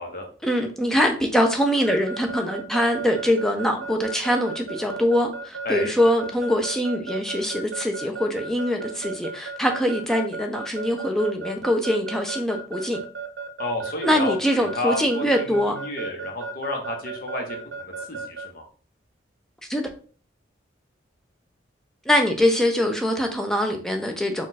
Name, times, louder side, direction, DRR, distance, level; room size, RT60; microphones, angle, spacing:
voice 1, 0.4-13.0 14.0-15.8 19.7-19.9 22.1-24.5, equal, ahead, 0.5 m, -23 dB
Keyboard (musical) / Alarm, 1.9-18.5, right 5 dB, 60° right, 0.7 m, -34 dB
voice 2, 13.6-18.6, left 1 dB, 50° left, 0.9 m, -31 dB
4.2 x 2.4 x 4.1 m
head